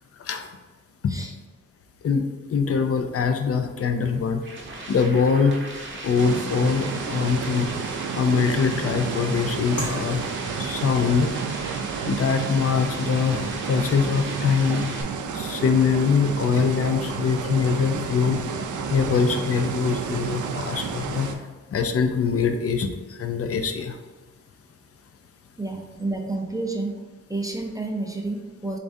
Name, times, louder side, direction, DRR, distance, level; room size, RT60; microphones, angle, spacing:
voice 1, 0.2-0.5 1.0-1.1 2.0-4.5 4.9-5.7 6.0-7.7 8.1-10.3 10.6-11.3 12.1-14.8 15.3-18.5 18.9-21.3 21.7-24.0, left 5 dB, 50° left, 7 dB, 0.5 m, -23 dB
sound 1, 4.0-15.0, right 2 dB, 40° right, 0.8 m, -38 dB
sound 2, 6.2-21.3, right 5 dB, 75° right, 0.5 m, -31 dB
sound 3, 9.8-18.6, left 1 dB, 65° left, 1.1 m, -43 dB
voice 2, 25.6-27.0 27.3-28.8, right 2 dB, 10° right, 2 dB, 0.5 m, -30 dB
6.7 x 2.5 x 2.6 m, 1.3 s
cardioid pair, 85°, 30 cm